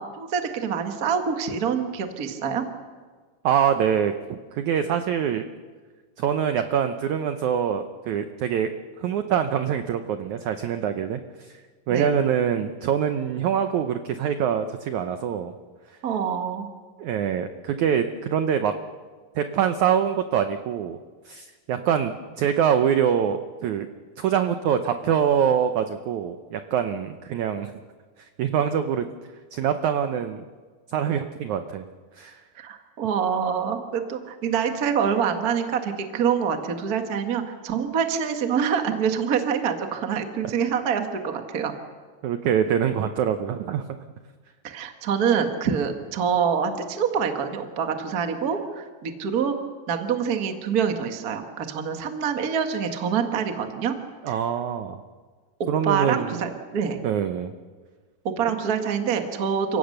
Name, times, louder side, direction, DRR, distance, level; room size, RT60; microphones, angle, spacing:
voice 1, 0.0-2.6 11.9-12.1 16.0-16.7 32.5-41.7 44.6-49.6 49.9-53.9 54.3-54.4 55.6-57.0 58.2-59.8, right 7 dB, 65° right, 5 dB, 0.9 m, -26 dB
voice 2, 3.4-5.5 6.2-8.7 9.0-11.5 11.9-15.5 17.0-18.7 19.3-21.0 21.3-23.9 24.2-27.8 28.4-29.0 29.5-30.4 30.9-31.8 32.2-32.4 42.2-44.0 54.2-55.0 55.7-56.3 57.0-57.5, right 8 dB, 80° right, 8 dB, 1.7 m, -24 dB
29.5 x 17.0 x 6.6 m, 1.5 s
omnidirectional pair, 4.5 m